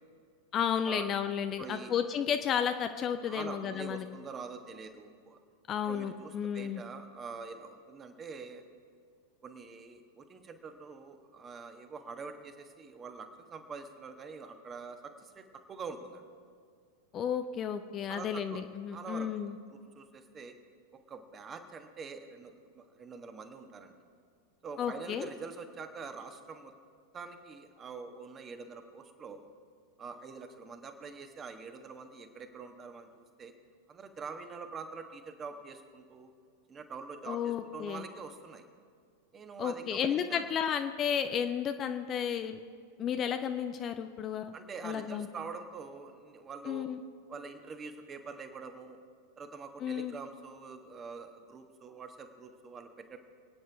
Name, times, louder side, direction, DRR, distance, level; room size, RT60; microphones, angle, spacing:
voice 1, 0.5-4.1 5.7-6.8 17.1-19.6 24.8-25.3 37.3-38.0 39.6-42.6 43.0-44.5 44.8-45.3 46.7-47.0 49.8-50.1, left 8 dB, 30° left, 8 dB, 0.6 m, -32 dB
voice 2, 1.6-1.9 3.3-5.4 5.8-8.6 9.4-16.2 18.1-18.6 18.9-19.3 19.7-20.5 21.1-23.9 24.6-26.7 27.1-29.5 30.0-33.5 33.9-36.3 36.7-38.7 39.3-40.5 44.5-46.9 47.3-49.0 49.4-53.2, right 5 dB, 25° right, 6 dB, 1.4 m, -45 dB
27.0 x 9.4 x 3.5 m, 2.1 s
figure-of-eight pair, 90°, 0 cm